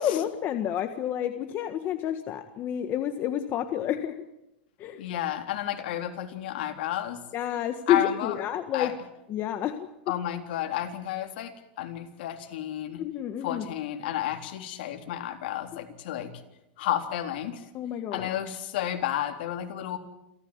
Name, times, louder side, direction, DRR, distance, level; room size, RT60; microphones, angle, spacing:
voice 1, 0.0-4.2 4.8-5.0 7.3-8.9 9.3-9.9 13.0-13.6 17.7-18.3, left 10 dB, 35° left, 7 dB, 1.6 m, -29 dB
voice 2, 5.0-7.2 7.9-8.4 8.7-8.9 10.1-11.5 11.8-13.0 13.4-16.3 16.8-17.6 18.1-20.0, left 12 dB, 70° left, 5 dB, 3.7 m, -31 dB
29.0 x 14.0 x 9.7 m, 0.88 s
supercardioid pair, 135°, 6 cm